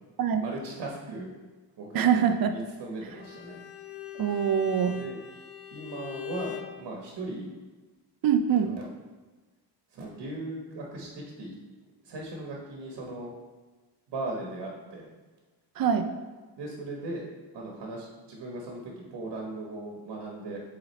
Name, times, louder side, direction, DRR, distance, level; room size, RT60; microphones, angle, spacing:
voice 1, 0.3-1.3 1.8-2.1 2.5-3.6 5.0-5.2 5.7-7.5 8.6-8.9 9.9-11.5 12.0-13.3 14.1-15.1 16.6-20.6, right 2 dB, 85° right, -1 dB, 1.1 m, -38 dB
voice 2, 1.9-2.5 4.2-5.0 8.2-8.7 15.8-16.1, right 8 dB, 60° right, 7 dB, 0.5 m, -24 dB
Bowed string instrument, 3.1-6.8, left 11 dB, 40° left, 0.4 m, -42 dB
7.8 x 4.0 x 3.2 m, 1.3 s
wide cardioid pair, 160°, 40 cm